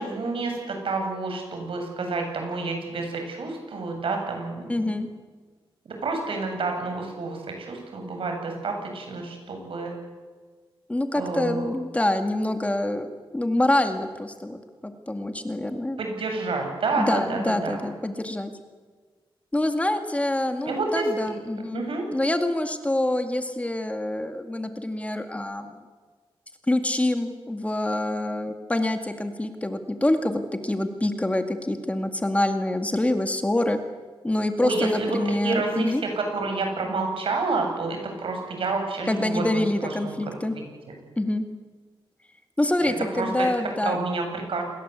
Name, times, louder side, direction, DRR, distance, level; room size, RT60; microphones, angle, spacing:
voice 1, 0.0-4.8 5.9-9.9 11.1-11.7 16.0-17.8 20.6-21.1 21.7-22.0 34.6-35.2 35.4-40.9 42.8-43.5 43.8-44.6, right 3 dB, 70° right, 3 dB, 7.8 m, -29 dB
voice 2, 4.7-5.1 10.9-16.0 17.0-18.5 19.5-21.8 22.1-25.7 26.7-33.8 34.2-36.0 39.1-40.6 41.2-41.5 42.6-44.0, left 1 dB, 15° left, 6 dB, 2.1 m, -26 dB
28.5 x 21.5 x 8.3 m, 1.5 s
wide cardioid pair, 110°, 9 cm